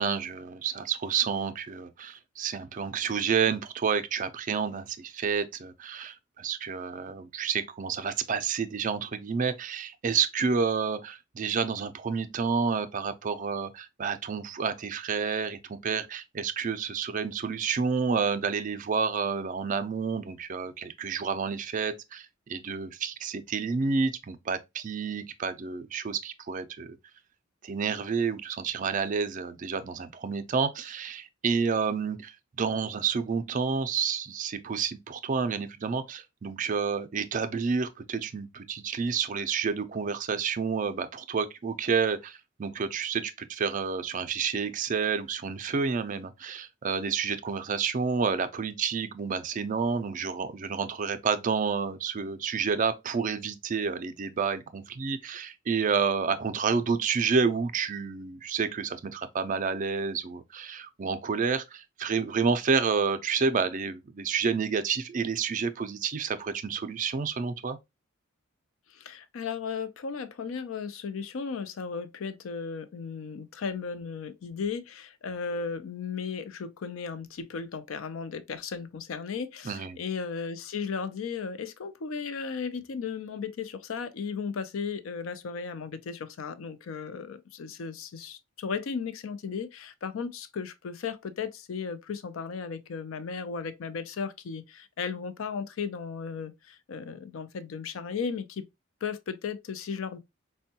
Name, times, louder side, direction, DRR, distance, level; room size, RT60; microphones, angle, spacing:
voice 1, 0.0-27.0 27.6-67.8 79.6-80.0, right 5 dB, 40° right, 0.4 m, -29 dB
voice 2, 68.9-98.6 99.0-100.2, left 5 dB, 75° left, 0.4 m, -35 dB
4.3 x 2.2 x 2.7 m
head